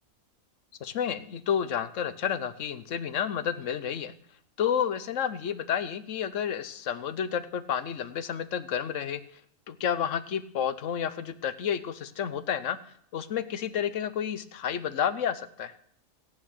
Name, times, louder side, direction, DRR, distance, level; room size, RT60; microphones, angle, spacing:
voice 1, 0.8-4.1 4.6-9.2 9.7-15.7, left 8 dB, 75° left, 14 dB, 1.2 m, -30 dB
14.5 x 9.4 x 6.5 m, 0.64 s
omnidirectional pair, 1.3 m